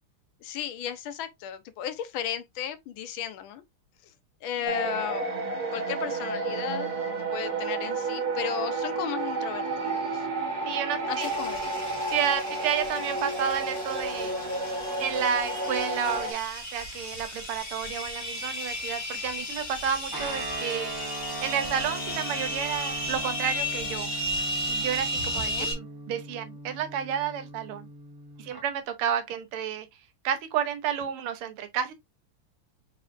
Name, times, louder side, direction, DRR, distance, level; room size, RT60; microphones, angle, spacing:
voice 1, 0.4-3.6 4.4-5.3 5.7-6.9 7.3-10.2 11.1-11.8 25.5-25.7, left 9 dB, 75° left, 1.5 m, -34 dB
sound 1, 4.7-16.3, right 2 dB, 50° right, 1.5 m, -31 dB
voice 2, 10.7-11.3 12.1-14.3 15.0-20.9 21.4-24.1 24.7-27.9 28.4-29.9 30.2-31.9, right 8 dB, 90° right, 1.7 m, -31 dB
sound 2, 11.2-25.7, equal, 20° left, 1.6 m, -34 dB
Guitar, 20.1-28.6, right 2 dB, 30° right, 0.4 m, -39 dB
4.7 x 4.3 x 2.5 m
omnidirectional pair, 2.4 m